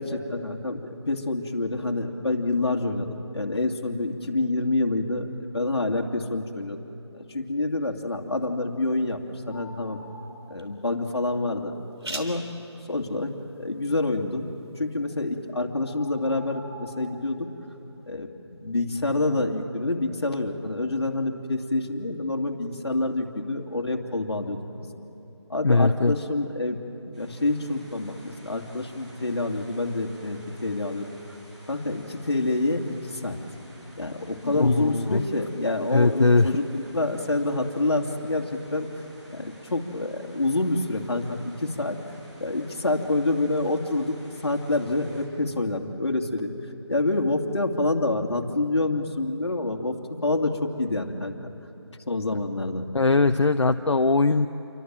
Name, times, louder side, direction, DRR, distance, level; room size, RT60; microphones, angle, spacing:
voice 1, 0.0-6.8 7.1-9.2 9.5-10.0 10.5-11.8 12.0-12.4 12.9-14.5 14.8-17.5 18.1-24.6 25.5-26.8 27.0-31.1 31.7-33.4 34.0-38.9 39.3-42.0 42.4-46.5 46.9-51.3 52.1-52.9, left 2 dB, 60° left, 2 dB, 2.7 m, -27 dB
sound 1, 8.0-15.5, right 2 dB, 65° right, 3.4 m, -46 dB
sound 2, 9.4-10.4 15.0-15.1 15.8-17.1, equal, 35° left, 7.6 m, -45 dB
voice 2, 25.6-26.1 34.4-35.2 35.9-36.5 52.9-54.5, left 3 dB, 85° left, 8 dB, 0.8 m, -20 dB
sound 3, 27.1-45.2, equal, 15° right, 6.6 m, -52 dB
29.0 x 24.0 x 7.7 m, 2.9 s
figure-of-eight pair, 175°, 15 cm